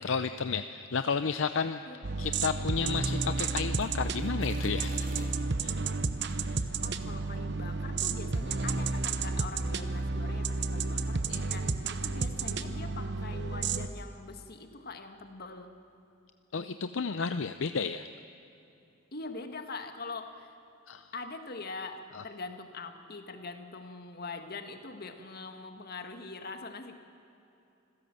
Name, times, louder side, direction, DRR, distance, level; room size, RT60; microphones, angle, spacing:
voice 1, 0.0-1.8 2.2-5.3 5.6-5.7 6.3-6.6 11.3-11.4 16.5-18.1 20.9-21.0 22.1-22.2, left 5 dB, 70° left, 10 dB, 0.6 m, -32 dB
sound 1, 2.0-13.9, right 3 dB, 60° right, 0.9 m, -32 dB
sound 2, 3.1-5.5 6.1-6.4, right 3 dB, 45° right, 2.9 m, -52 dB
voice 2, 6.8-11.2 11.5-15.7 19.1-20.5 21.1-22.0 22.2-26.9, left 3 dB, 50° left, 6 dB, 1.7 m, -43 dB
26.5 x 16.5 x 7.7 m, 2.8 s
head